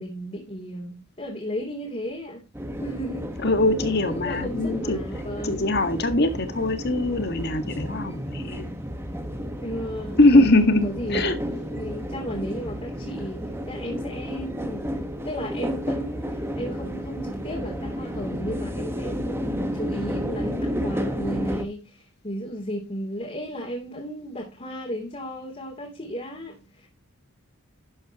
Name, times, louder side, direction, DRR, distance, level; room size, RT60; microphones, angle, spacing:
voice 1, 0.0-2.4 2.8-3.3 4.0-5.8 9.6-10.5 10.8-26.9, equal, 30° left, 3.1 m, -35 dB
sound 1, 2.5-21.6, equal, 10° right, 1.4 m, -32 dB
voice 2, 3.4-5.0 5.4-8.7 10.2-11.3, left 2 dB, 50° left, 1.8 m, -21 dB
12.5 x 8.9 x 3.0 m
head